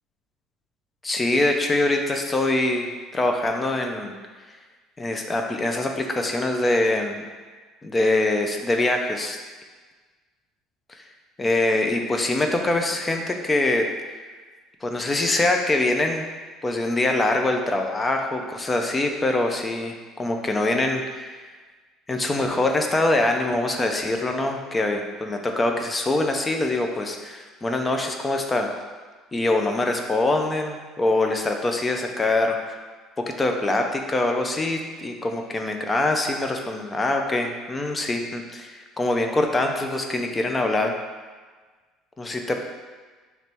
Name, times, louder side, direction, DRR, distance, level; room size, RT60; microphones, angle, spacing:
voice 1, 1.0-4.1 5.0-7.2 7.8-9.4 10.9-11.0 11.4-13.9 14.8-16.3 16.6-21.4 22.1-28.7 29.3-32.6 33.2-40.9 42.2-42.6, left 2 dB, 15° left, 3 dB, 0.3 m, -24 dB
4.1 x 3.0 x 3.3 m, 1.4 s
cardioid pair, 160°, 0 cm